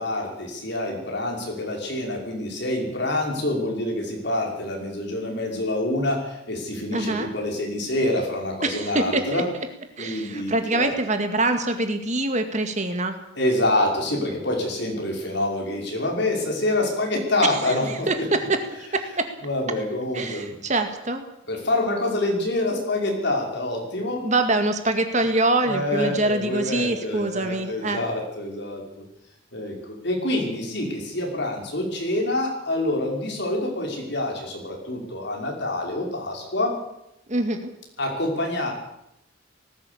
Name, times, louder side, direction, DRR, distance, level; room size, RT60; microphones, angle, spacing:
voice 1, 0.0-9.5 10.0-10.9 13.4-18.3 19.4-20.6 21.5-24.2 25.6-29.0 29.5-36.8 38.0-38.7, left 1 dB, 55° left, 1 dB, 5.8 m, -26 dB
voice 2, 6.9-7.3 8.6-9.4 10.0-13.2 17.7-17.8 18.1-18.6 18.9-19.3 20.1-21.2 24.2-28.0 37.3-37.7, right 2 dB, 35° right, 7 dB, 2.0 m, -24 dB
19.0 x 16.5 x 8.6 m, 0.81 s
head